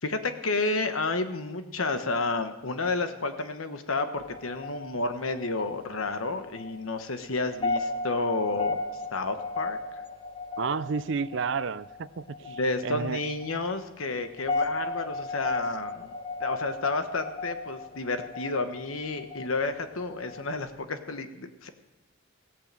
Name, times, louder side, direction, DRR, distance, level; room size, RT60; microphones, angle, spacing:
voice 1, 0.0-8.8 9.1-10.0 12.4-16.1 16.4-21.7, left 3 dB, 85° left, 8 dB, 1.2 m, -31 dB
sound 1, 4.2-20.6, left 3 dB, 25° left, 0.8 m, -36 dB
voice 2, 10.6-13.2, right 5 dB, 60° right, 17 dB, 0.4 m, -31 dB
16.5 x 8.5 x 7.6 m, 0.97 s
head